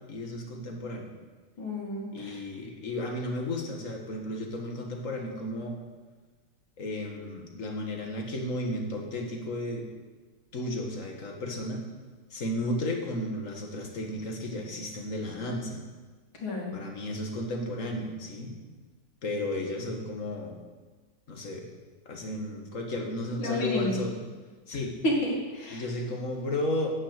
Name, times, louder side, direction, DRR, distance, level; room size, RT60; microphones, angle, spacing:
voice 1, 0.1-1.1 2.1-5.8 6.8-9.9 10.5-11.8 12.3-15.8 16.7-18.5 19.2-20.6 21.3-21.7 22.1-24.2 24.7-25.0 25.7-27.0, left 1 dB, 40° left, 2 dB, 2.0 m, -33 dB
voice 2, 1.6-2.4 16.4-16.8 23.4-24.0 25.0-25.8, left 1 dB, 90° left, -2 dB, 3.3 m, -30 dB
11.0 x 7.5 x 8.2 m, 1.4 s
omnidirectional pair, 2.1 m